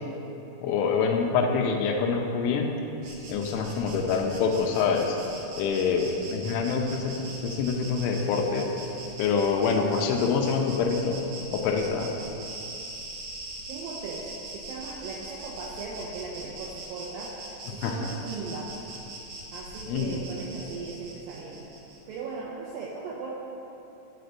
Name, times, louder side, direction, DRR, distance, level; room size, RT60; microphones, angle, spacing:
voice 1, 0.6-2.7 3.3-5.2 5.6-8.7 9.2-11.2 11.5-12.1 17.8-18.0 19.9-20.2, left 5 dB, 90° left, 2 dB, 3.2 m, -26 dB
Insect, 3.0-22.2, right 2 dB, 70° right, 1.6 m, -42 dB
voice 2, 13.7-17.3 17.6-18.7 19.5-21.7 22.1-23.3, right 4 dB, 90° right, -4 dB, 2.0 m, -38 dB
11.5 x 4.3 x 8.1 m, 2.8 s
omnidirectional pair, 5.3 m